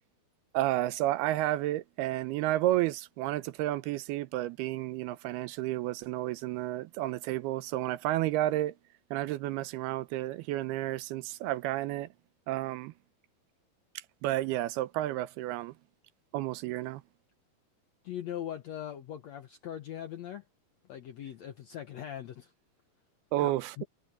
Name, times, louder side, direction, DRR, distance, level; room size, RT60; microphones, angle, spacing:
voice 1, 0.5-8.7 9.1-12.1 12.5-12.9 14.2-15.7 16.3-17.0 23.3-23.9, right 15 dB, 85° right, 2.8 m, -31 dB
voice 2, 18.0-20.4 20.9-22.5 23.4-23.8, left 10 dB, 70° left, 1.6 m, -40 dB
omnidirectional pair, 4.5 m